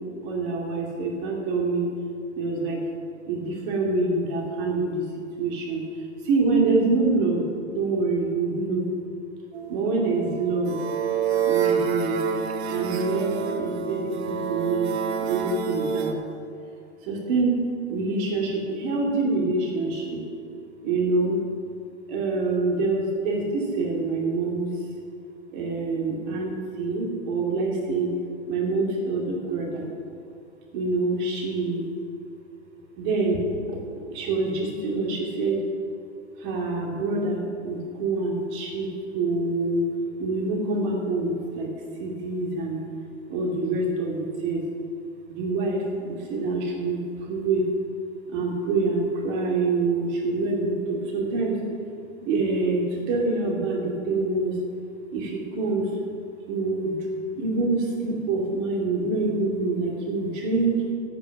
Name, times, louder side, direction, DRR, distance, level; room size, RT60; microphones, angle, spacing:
voice 1, 0.2-1.9 2.3-2.8 3.3-5.0 5.4-5.8 6.2-7.4 7.7-8.9 9.7-10.8 11.5-12.2 12.7-14.9 15.2-16.2 17.0-20.2 20.8-21.4 22.1-24.6 25.5-28.1 28.5-29.9 30.7-31.9 33.0-33.4 33.7-33.8 34.1-35.6 36.4-38.9 39.1-39.9 40.2-41.7 42.0-42.8 43.3-44.6 45.3-47.7 48.3-51.6 52.2-54.5 55.1-55.9 56.5-57.0 57.4-60.8, right 3 dB, 40° right, -1 dB, 2.8 m, -26 dB
sound 1, 9.5-16.1, right 7 dB, 55° right, 1.2 m, -28 dB
12.0 x 9.3 x 5.9 m, 2.4 s
hypercardioid pair, 120°, 39 cm